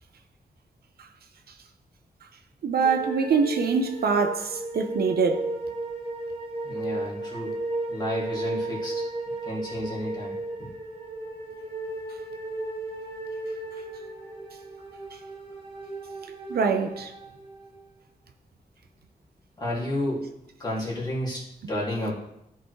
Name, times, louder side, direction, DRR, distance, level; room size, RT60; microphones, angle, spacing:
voice 1, 2.6-5.5 15.1-15.2 16.5-17.1, right 5 dB, 70° right, 0.8 m, -24 dB
sound 1, 2.8-18.0, right 2 dB, 35° right, 1.8 m, -35 dB
voice 2, 6.6-7.6 7.9-9.0 9.4-10.3 10.6-10.7 19.6-20.3 20.6-21.4 21.7-22.1, left 1 dB, 25° left, 2.5 m, -31 dB
13.5 x 4.8 x 3.2 m
wide cardioid pair, 170°, 16 cm